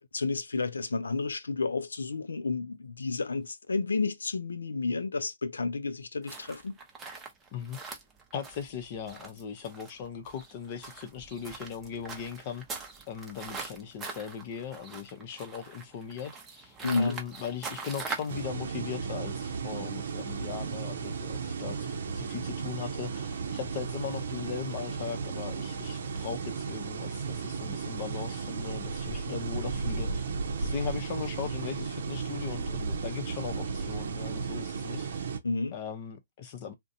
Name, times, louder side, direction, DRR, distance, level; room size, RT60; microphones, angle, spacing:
voice 1, 0.1-6.7 16.8-17.2 35.4-35.8, left 3 dB, 90° left, 0.4 m, -31 dB
sound 1, 6.2-18.4, right 4 dB, 15° right, 0.7 m, -43 dB
voice 2, 8.3-12.6 13.1-30.3 30.6-35.3 35.7-36.7, left 7 dB, 40° left, 0.7 m, -39 dB
sound 2, 18.3-35.4, right 5 dB, 65° right, 0.6 m, -34 dB
2.5 x 2.1 x 2.6 m
hypercardioid pair, 135°, 0 cm